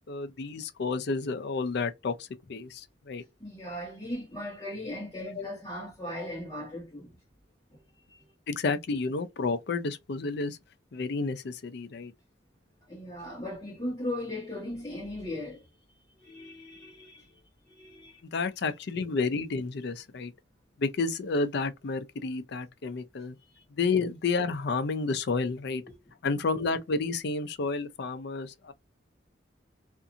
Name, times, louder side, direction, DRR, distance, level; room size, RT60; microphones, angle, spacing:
voice 1, 0.1-3.2 5.3-5.5 8.5-10.6 10.9-12.1 18.3-20.3 20.8-23.4 23.8-25.8 26.2-28.7, left 4 dB, 60° left, 0.5 m, -30 dB
voice 2, 3.4-7.1 7.7-7.8 8.1-8.3 12.9-17.4 17.7-18.2 23.4-23.6 25.8-25.9, left 1 dB, 20° left, 1.0 m, -38 dB
2.6 x 2.5 x 2.6 m
head